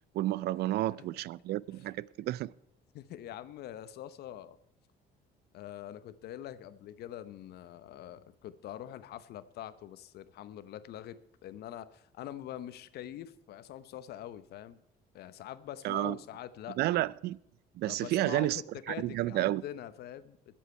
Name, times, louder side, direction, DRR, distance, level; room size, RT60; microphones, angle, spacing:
voice 1, 0.1-2.5 15.8-16.2 16.8-17.4 17.7-18.6 18.9-19.6, right 15 dB, 70° right, 0.5 m, -31 dB
voice 2, 0.7-1.0 2.9-4.6 5.5-14.8 15.1-17.0 17.9-20.6, left 11 dB, 70° left, 0.9 m, -44 dB
21.5 x 7.5 x 4.4 m
cardioid pair, 110°, 17 cm